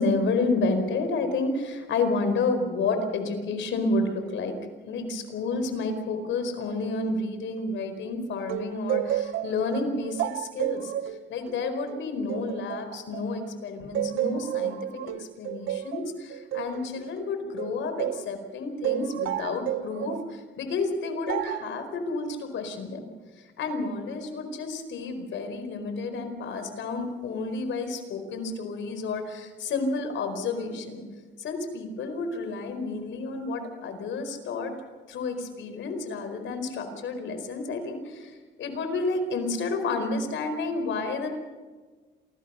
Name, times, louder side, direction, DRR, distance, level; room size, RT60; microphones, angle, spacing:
voice 1, 0.0-4.6 4.9-23.0 23.4-31.0 31.4-34.7 35.1-41.3, left 3 dB, 75° left, 7 dB, 4.7 m, -30 dB
sound 1, 8.5-13.5 13.9-18.3 18.8-20.3 21.3-21.7, right 12 dB, 80° right, 0.8 m, -31 dB
27.5 x 20.0 x 5.7 m, 1.4 s
cardioid pair, 90°, 20 cm